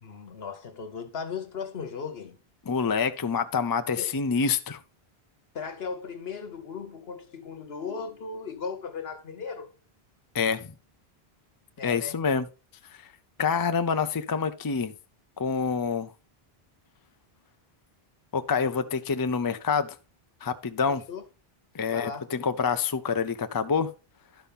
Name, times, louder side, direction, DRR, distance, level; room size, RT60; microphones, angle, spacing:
voice 1, 0.0-2.4 4.0-4.1 5.5-9.7 11.8-12.2 20.9-21.2 21.9-22.3, left 5 dB, 75° left, 1.2 m, -37 dB
voice 2, 2.7-4.8 10.3-10.7 11.8-12.5 13.0-13.1 13.4-14.9 15.4-16.1 18.3-19.9 20.4-21.0 21.7-23.9, left 5 dB, 30° left, 0.4 m, -27 dB
11.5 x 5.7 x 3.6 m
omnidirectional pair, 1.0 m